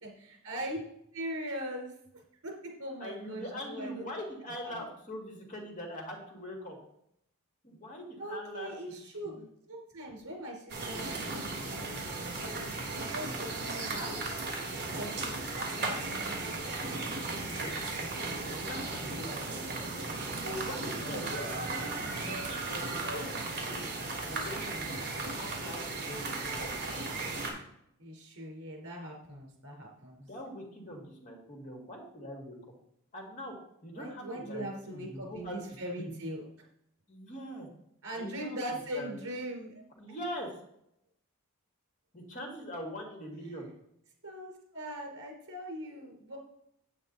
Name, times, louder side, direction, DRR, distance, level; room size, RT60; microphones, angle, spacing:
voice 1, 0.0-0.8 1.1-2.5 2.8-4.1 4.6-4.8 8.2-9.3 9.7-14.3 14.9-18.1 19.0-19.3 28.0-30.2 33.9-36.5 38.0-39.8 40.1-40.2 43.4-43.5 44.2-46.4, right 1 dB, 80° right, 0 dB, 3.7 m, -41 dB
voice 2, 3.0-6.8 7.6-8.7 9.2-9.4 17.6-17.7 18.2-23.9 24.3-26.7 30.2-32.6 33.1-33.5 33.8-35.6 36.0-36.1 37.1-37.7 38.1-38.6 38.9-39.2 40.0-40.5 42.1-43.7, equal, 35° left, 0 dB, 2.1 m, -42 dB
sound 1, 10.7-27.5, right 3 dB, 50° right, 3.0 m, -36 dB
8.9 x 8.5 x 4.0 m, 0.75 s
head